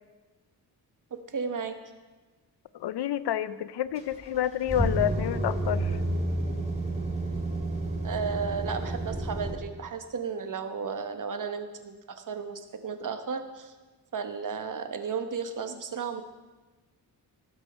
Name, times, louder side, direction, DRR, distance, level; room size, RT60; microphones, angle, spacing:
voice 1, 1.1-1.8 8.0-13.7 14.1-16.2, right 5 dB, 50° right, 8 dB, 1.1 m, -34 dB
voice 2, 2.7-6.0, left 11 dB, 85° left, 15 dB, 0.6 m, -29 dB
sound 1, 4.0-9.5, right 1 dB, 15° right, 2.4 m, -30 dB
18.5 x 6.2 x 5.4 m, 1.3 s
wide cardioid pair, 125°, 40 cm